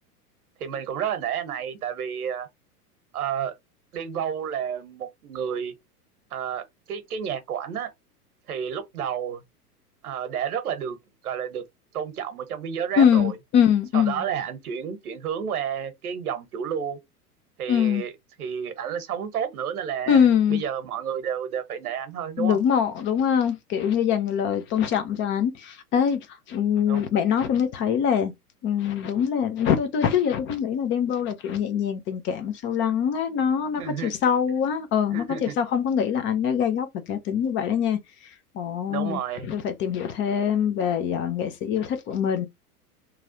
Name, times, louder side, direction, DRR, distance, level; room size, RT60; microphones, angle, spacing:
voice 1, 0.6-2.5 3.1-3.5 3.9-5.7 6.3-7.9 8.5-9.4 10.0-11.0 11.2-11.6 11.9-13.4 13.9-17.0 17.6-18.1 18.4-22.6 26.9-27.0 33.8-34.1 35.1-35.5 38.9-39.6, right 8 dB, 70° right, 1.1 m, -31 dB
voice 2, 13.0-14.2 17.7-18.0 20.1-20.6 22.4-26.2 26.5-28.3 28.6-38.0 38.5-42.5, left 8 dB, 25° left, 0.5 m, -23 dB
3.1 x 2.3 x 2.7 m
figure-of-eight pair, 95°, 46 cm